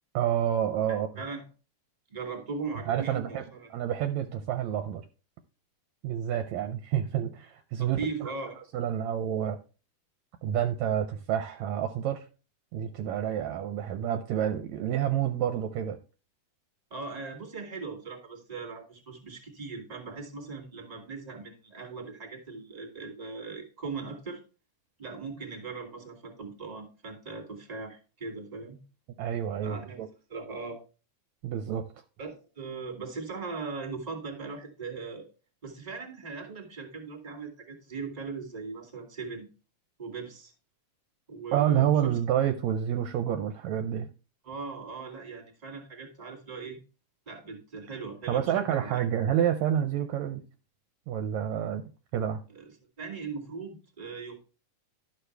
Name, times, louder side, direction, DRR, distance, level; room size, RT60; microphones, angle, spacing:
voice 1, 0.1-1.1 2.9-3.4 3.7-5.1 6.0-8.3 8.7-9.6 10.4-12.3 12.7-16.0 29.2-30.1 31.4-31.9 41.5-44.1 48.3-50.4 51.1-51.8 52.1-52.4, right 10 dB, 75° right, 1.8 m, -28 dB
voice 2, 0.9-1.5 2.1-3.7 7.8-8.7 16.9-24.4 25.0-28.8 29.6-30.0 30.3-30.8 32.2-35.3 35.6-39.5 40.0-40.5 41.3-42.2 44.4-46.8 47.3-49.0 52.5-54.4, right 4 dB, 15° right, 1.9 m, -39 dB
12.0 x 6.5 x 3.3 m
omnidirectional pair, 3.5 m